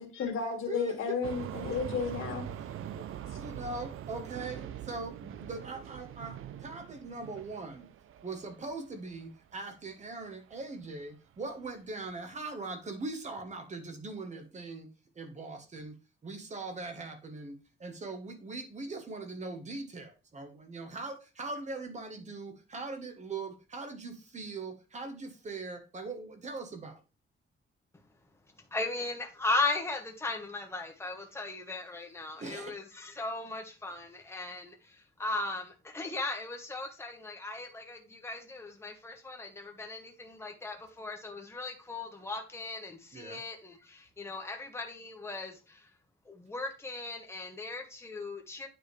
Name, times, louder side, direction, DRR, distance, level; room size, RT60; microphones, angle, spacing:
voice 1, 0.0-2.5, left 5 dB, 75° left, 2.1 m, -33 dB
voice 2, 0.7-1.2 2.6-3.0 3.3-7.9 8.2-27.0 32.3-32.8 43.1-43.4, right 3 dB, 35° right, 1.2 m, -41 dB
sound 1, 1.2-9.8 10.2-10.7 11.0-11.1 11.6-11.7 12.1-12.2, right 10 dB, 75° right, 0.6 m, -43 dB
voice 3, 28.7-34.7 35.2-45.8 46.3-48.7, left 3 dB, 10° left, 1.2 m, -37 dB
9.1 x 5.0 x 3.3 m
wide cardioid pair, 165°, 21 cm